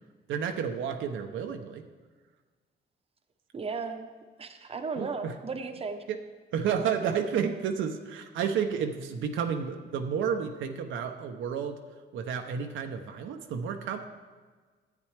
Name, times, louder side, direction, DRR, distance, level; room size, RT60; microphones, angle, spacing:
voice 1, 0.3-1.8 5.0-5.3 6.1-6.2 6.5-11.8 12.1-14.0, right 7 dB, 75° right, 5 dB, 0.7 m, -31 dB
voice 2, 3.5-4.1 4.4-6.0, right 4 dB, 30° right, 6 dB, 0.8 m, -35 dB
10.5 x 8.3 x 3.3 m, 1.4 s
cardioid pair, 90°, 20 cm